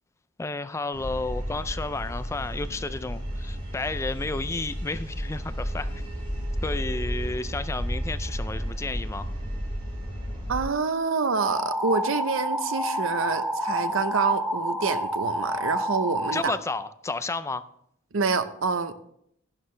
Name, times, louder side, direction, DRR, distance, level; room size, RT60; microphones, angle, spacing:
voice 1, 0.4-5.9 6.6-9.3 16.3-17.7, left 3 dB, 15° left, 0.3 m, -32 dB
sound 1, 0.9-10.6, equal, 25° right, 4.0 m, -32 dB
voice 2, 10.5-16.5 18.1-18.9, right 4 dB, 75° right, 0.7 m, -27 dB
sound 2, 11.4-16.4, equal, 5° right, 0.9 m, -29 dB
11.5 x 11.0 x 3.2 m
head